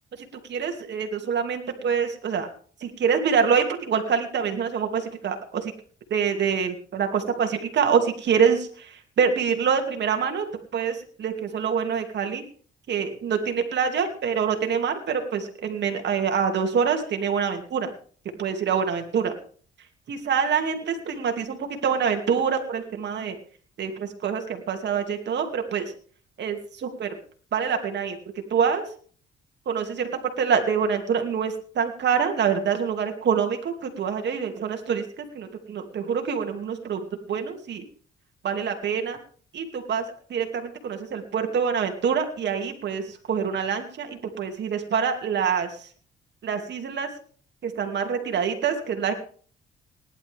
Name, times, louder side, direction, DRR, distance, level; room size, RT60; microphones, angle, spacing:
voice 1, 0.5-2.5 2.8-5.7 6.1-12.4 12.9-17.9 18.4-19.3 20.1-23.4 23.8-25.9 26.4-27.1 27.5-28.2 28.5-28.9 29.7-30.1 30.4-37.8 38.4-39.2 39.5-40.0 40.3-45.9 46.4-47.1 47.6-49.1, right 6 dB, 60° right, 5 dB, 2.7 m, -26 dB
18.5 x 11.5 x 3.6 m, 0.44 s
cardioid pair, 90°, 20 cm